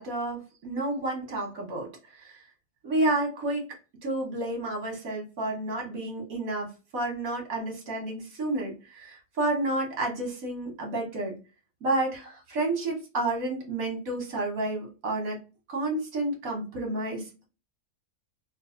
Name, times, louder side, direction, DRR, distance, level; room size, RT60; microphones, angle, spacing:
voice 1, 0.0-2.4 2.8-3.6 4.0-11.4 11.8-15.4 15.7-17.5, right 2 dB, 70° right, 0 dB, 1.8 m, -30 dB
4.0 x 2.7 x 2.5 m, 0.31 s
omnidirectional pair, 1.5 m